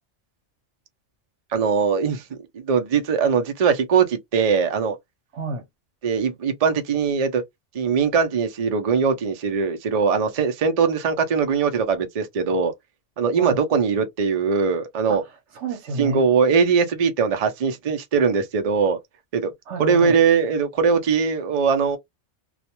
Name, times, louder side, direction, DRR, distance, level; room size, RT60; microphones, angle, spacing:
voice 1, 1.5-5.0 6.0-7.4 7.7-12.7 13.2-15.2 16.0-19.0 19.3-19.5 19.8-22.0, right 6 dB, 45° right, 0.5 m, -21 dB
voice 2, 15.1-16.2 19.7-20.2, right 3 dB, 75° right, 1.0 m, -31 dB
2.4 x 2.1 x 2.8 m
omnidirectional pair, 1.2 m